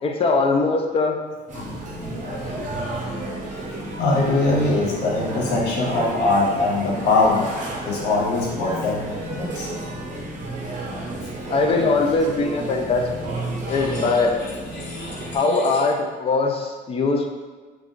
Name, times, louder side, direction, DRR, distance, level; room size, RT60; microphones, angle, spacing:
voice 1, 0.0-1.2 2.2-2.7 11.5-13.0 13.7-14.3 15.3-17.3, left 3 dB, 35° left, 2 dB, 0.4 m, -21 dB
sound 1, 1.5-15.4, right 2 dB, 50° right, 0.7 m, -32 dB
voice 2, 4.0-7.5 7.9-9.7 13.7-15.6, left 2 dB, 80° left, -3 dB, 0.7 m, -23 dB
2.5 x 2.2 x 3.7 m, 1.4 s
cardioid pair, 110°, 17 cm